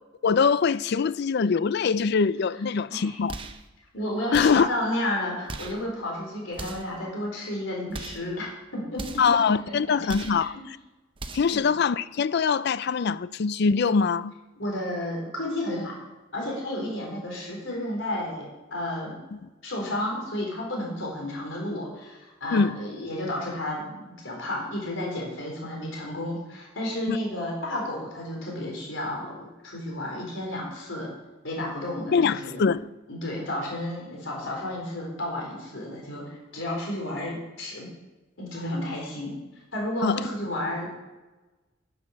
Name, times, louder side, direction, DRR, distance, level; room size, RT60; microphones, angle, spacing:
voice 1, 0.2-3.4 4.3-4.7 9.2-10.5 11.3-14.4 19.3-19.4 22.5-22.8 27.1-27.2 32.1-32.9 40.0-40.3, left 5 dB, 55° left, 0.4 m, -23 dB
voice 2, 2.9-3.2 3.9-9.0 11.5-11.7 14.6-15.9 16.3-18.4 18.7-19.1 19.6-31.1 31.4-32.6 33.1-37.9 38.4-39.3 39.7-40.9, left 1 dB, 75° left, 4.2 m, -32 dB
sound 1, 3.3-3.7 4.3-4.7 5.5-5.8 6.5-7.0 7.9-8.3 9.0-9.4 10.1-10.5 11.2-11.6, right 3 dB, 25° right, 0.8 m, -38 dB
10.0 x 9.1 x 6.5 m
head